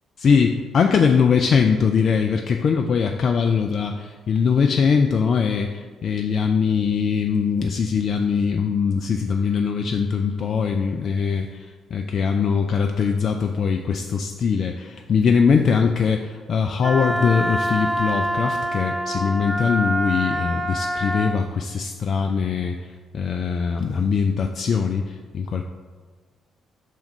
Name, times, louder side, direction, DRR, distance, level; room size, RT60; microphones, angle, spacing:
voice 1, 0.2-25.6, left 6 dB, 50° left, 4 dB, 0.3 m, -21 dB
Wind instrument woodwind instrument, 16.8-21.4, right 1 dB, ahead, 0.6 m, -25 dB
5.4 x 3.5 x 5.3 m, 1.4 s
figure-of-eight pair, 45°, 0 cm